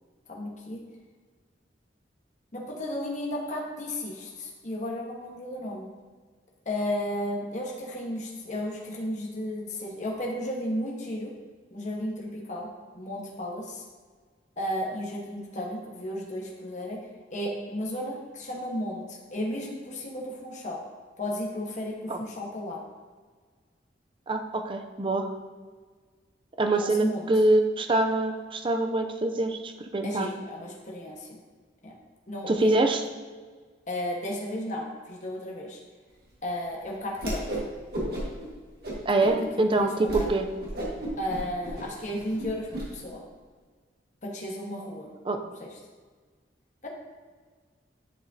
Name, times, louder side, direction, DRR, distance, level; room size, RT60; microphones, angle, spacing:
voice 1, 0.3-0.8 2.5-5.9 6.6-11.3 11.7-12.7 12.9-13.8 14.6-17.0 17.3-20.8 21.2-22.8 26.8-27.3 30.0-31.3 31.8-31.9 32.3-32.7 33.9-35.8 36.4-37.4 39.2-40.3 41.2-43.2 44.2-45.1 45.4-45.7 46.8-46.9, left 1 dB, 40° left, -2 dB, 1.3 m, -34 dB
voice 2, 24.3-25.3 26.6-30.3 32.5-33.0 39.1-40.5 45.2-45.4, right 2 dB, 30° right, 6 dB, 0.5 m, -25 dB
Whoosh swoosh swish, 37.1-37.7 37.9-38.4 38.8-39.3 39.7-39.8 40.1-40.3 40.6-42.8, right 1 dB, 55° right, 1.7 m, -33 dB
10.5 x 5.0 x 2.8 m, 1.5 s
head